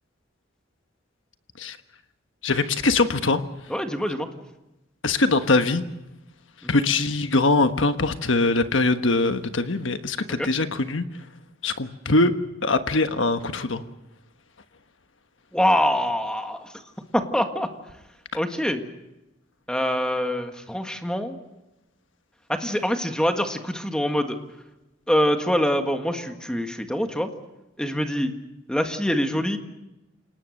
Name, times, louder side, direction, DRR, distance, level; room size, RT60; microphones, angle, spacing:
voice 1, 2.4-3.4 5.0-5.8 6.7-11.0 11.6-12.3 12.6-13.8, left 3 dB, 70° left, 9 dB, 1.3 m, -22 dB
voice 2, 3.7-4.3 6.6-6.8 10.4-10.5 15.5-16.7 17.1-17.7 18.3-18.8 19.7-21.4 22.5-24.4 25.1-27.3 27.8-28.3 28.7-29.6, equal, 5° left, 5 dB, 1.7 m, -24 dB
28.0 x 18.5 x 6.6 m, 0.97 s
head